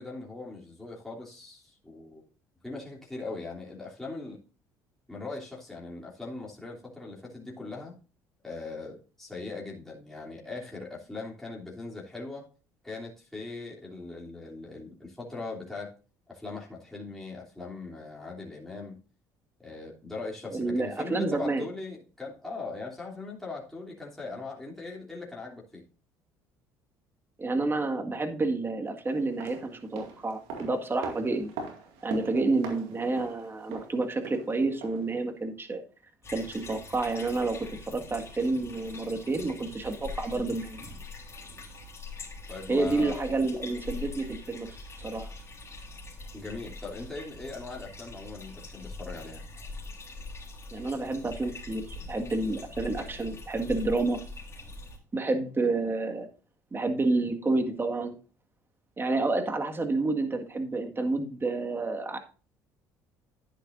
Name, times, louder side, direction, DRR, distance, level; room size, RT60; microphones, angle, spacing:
voice 1, 0.0-2.2 2.6-4.4 5.1-8.0 8.4-12.5 12.8-15.9 16.3-19.0 19.6-25.8 42.5-43.3 46.3-49.4, left 3 dB, 5° left, -4 dB, 3.1 m, -40 dB
voice 2, 20.5-21.6 27.4-31.5 32.0-35.8 36.3-40.8 42.7-44.7 45.0-45.3 50.7-54.2 55.1-56.3 56.7-58.1 59.0-62.2, right 3 dB, 25° right, 6 dB, 1.9 m, -29 dB
sound 1, 29.2-35.2 35.5-35.6, right 4 dB, 80° right, 2.2 m, -42 dB
sound 2, 36.2-55.0, left 3 dB, 30° left, 3.7 m, -43 dB
10.5 x 10.0 x 2.6 m, 0.36 s
supercardioid pair, 70°, 9 cm